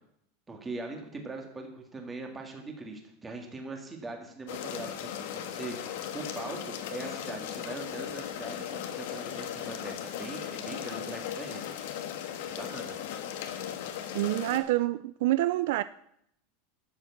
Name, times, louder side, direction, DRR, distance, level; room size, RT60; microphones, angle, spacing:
voice 1, 0.5-4.9 5.2-11.6 12.5-13.0, right 3 dB, 10° right, 1.9 m, -41 dB
sound 1, 4.5-14.6, left 10 dB, 60° left, 1.5 m, -37 dB
voice 2, 14.1-15.8, right 16 dB, 60° right, 0.3 m, -27 dB
12.5 x 7.3 x 7.1 m
supercardioid pair, 175°, 0 cm